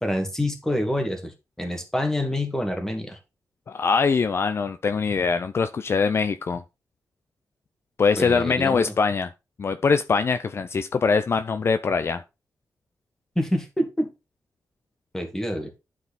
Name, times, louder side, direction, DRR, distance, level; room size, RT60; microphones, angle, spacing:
voice 1, 0.0-1.3 1.6-3.2 8.2-8.9 13.4-14.1 15.1-15.7, left 1 dB, 10° left, 2.2 m, -27 dB
voice 2, 3.7-6.6 8.0-9.3 9.6-12.2, left 5 dB, 45° left, 0.5 m, -23 dB
11.5 x 4.8 x 4.2 m
wide cardioid pair, 135°, 6 cm